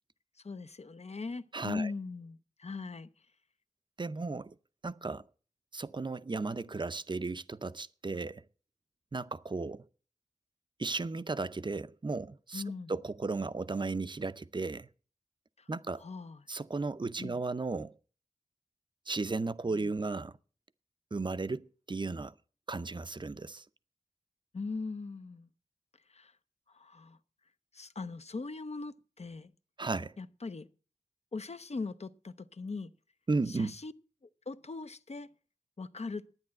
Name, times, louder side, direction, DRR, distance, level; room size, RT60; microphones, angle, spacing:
voice 1, 0.4-3.1 12.5-12.9 16.0-16.4 17.2-17.4 19.7-19.9 24.5-25.5 26.1-26.3 26.7-27.2 27.7-29.5 30.2-30.7 31.3-32.9 33.5-33.9 34.5-35.3 35.8-36.3, left 3 dB, 55° left, 0.6 m, -40 dB
voice 2, 1.5-1.9 4.0-4.6 4.8-5.2 5.7-8.4 9.1-9.8 10.8-12.6 12.9-14.9 15.7-16.0 16.5-17.9 19.1-20.3 21.1-22.3 22.7-23.6 29.8-30.1 33.3-33.7, right 3 dB, 35° right, 0.5 m, -35 dB
11.0 x 9.6 x 7.5 m
wide cardioid pair, 70°, 14 cm